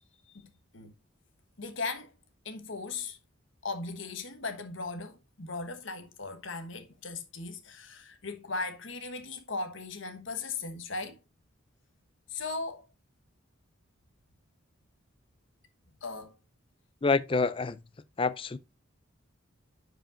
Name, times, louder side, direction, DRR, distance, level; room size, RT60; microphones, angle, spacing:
voice 1, 0.3-0.9 1.6-2.1 2.4-3.2 3.6-11.2 12.3-12.9 16.0-16.4, left 3 dB, 65° left, 1.2 m, -38 dB
voice 2, 17.0-17.8 18.2-18.6, left 4 dB, 25° left, 0.4 m, -27 dB
10.5 x 5.1 x 2.5 m
head